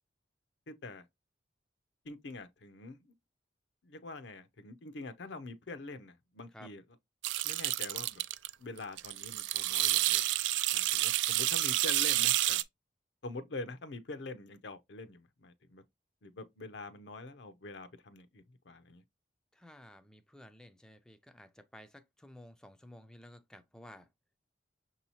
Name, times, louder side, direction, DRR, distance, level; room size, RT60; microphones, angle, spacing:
voice 1, 0.7-1.0 2.1-3.0 3.8-6.8 7.4-8.2 8.6-10.2 10.7-12.6 13.2-15.8 16.2-19.0, left 2 dB, 75° left, 0.6 m, -45 dB
sound 1, 7.2-8.5 8.8-12.6, right 15 dB, 85° right, 0.3 m, -29 dB
voice 2, 19.5-24.1, left 1 dB, 5° left, 0.3 m, -54 dB
6.1 x 2.8 x 2.8 m
head